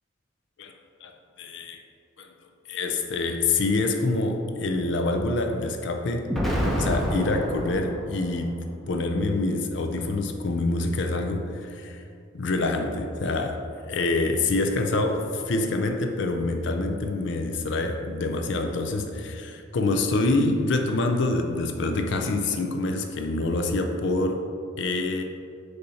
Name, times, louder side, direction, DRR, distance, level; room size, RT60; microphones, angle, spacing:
voice 1, 1.4-1.8 2.2-2.3 2.7-6.3 6.7-8.5 8.9-12.0 12.3-13.6 13.9-24.4 24.8-25.2, left 2 dB, 60° left, 4 dB, 0.4 m, -26 dB
Explosion, 6.3-8.4, equal, ahead, 0.6 m, -27 dB
6.6 x 2.8 x 5.5 m, 2.4 s
head